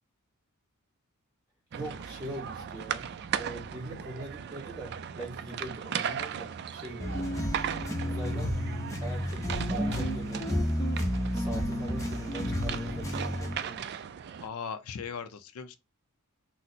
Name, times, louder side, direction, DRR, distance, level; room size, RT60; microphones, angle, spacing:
voice 1, 1.7-3.1 3.3-7.0 8.0-8.6 9.0-10.6 11.3-13.9, right 1 dB, 15° right, 1.6 m, -42 dB
sound 1, 1.7-14.5, right 8 dB, 50° right, 0.3 m, -38 dB
sound 2, 7.0-13.6, equal, 15° left, 0.7 m, -31 dB
voice 2, 14.4-15.8, left 6 dB, 75° left, 0.5 m, -38 dB
4.1 x 2.0 x 2.6 m
head